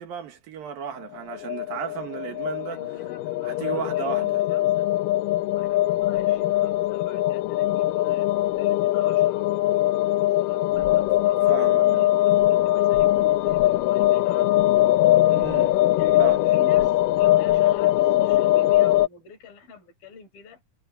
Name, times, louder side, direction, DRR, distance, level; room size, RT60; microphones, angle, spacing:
voice 1, 0.0-2.8 3.4-4.4 11.5-12.1 15.3-15.7 16.2-16.4, right 8 dB, 70° right, 3.3 m, -34 dB
sound 1, 1.1-19.1, left 15 dB, 85° left, 1.9 m, -21 dB
voice 2, 2.7-4.9 5.6-8.3 8.6-9.5 10.2-14.6 16.0-20.6, left 5 dB, 60° left, 7.3 m, -46 dB
omnidirectional pair, 4.6 m